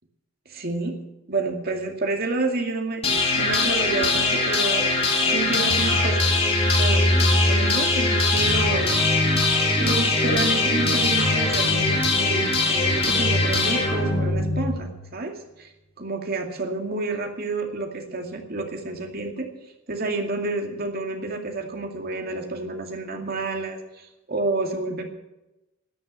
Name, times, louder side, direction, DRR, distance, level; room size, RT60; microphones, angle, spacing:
voice 1, 0.5-1.0 1.3-4.9 5.3-6.2 6.6-9.0 9.4-15.7 16.0-19.5 19.9-25.0, right 3 dB, 50° right, 3 dB, 2.3 m, -29 dB
sound 1, 3.0-15.0, left 2 dB, 30° left, 3.1 m, -21 dB
13.0 x 9.4 x 8.4 m, 0.98 s
head